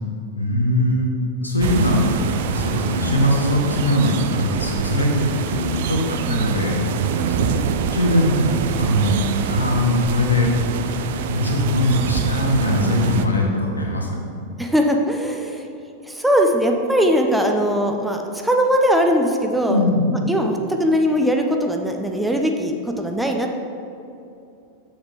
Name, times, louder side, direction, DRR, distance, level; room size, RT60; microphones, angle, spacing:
voice 1, 0.4-1.1 1.4-7.0 7.3-7.5 7.9-10.5 11.3-14.3 19.7-20.1, left 1 dB, 80° left, 0 dB, 1.0 m, -21 dB
sound 1, 1.6-13.3, right 6 dB, 55° right, 0.4 m, -25 dB
voice 2, 6.2-6.5 14.6-15.7 16.1-19.8 20.1-23.6, equal, 5° right, 2 dB, 0.6 m, -20 dB
7.3 x 6.5 x 3.2 m, 2.7 s
figure-of-eight pair, 90°, 0 cm